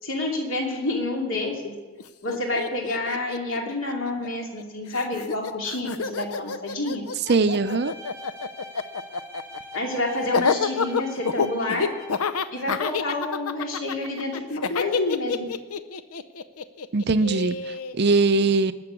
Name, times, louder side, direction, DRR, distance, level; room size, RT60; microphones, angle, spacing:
voice 1, 0.0-1.7 2.2-7.0 9.7-11.9 12.5-15.4, left 2 dB, 60° left, 0 dB, 2.6 m, -28 dB
Laughter, 2.0-2.1 2.3-4.6 4.9-17.9, left 5 dB, 80° left, 0.7 m, -28 dB
voice 2, 7.3-7.9 16.9-18.7, right 3 dB, 50° right, 12 dB, 0.6 m, -21 dB
Bowed string instrument, 7.4-12.8, left 1 dB, 10° left, 1.2 m, -43 dB
20.0 x 7.0 x 8.3 m, 1.3 s
head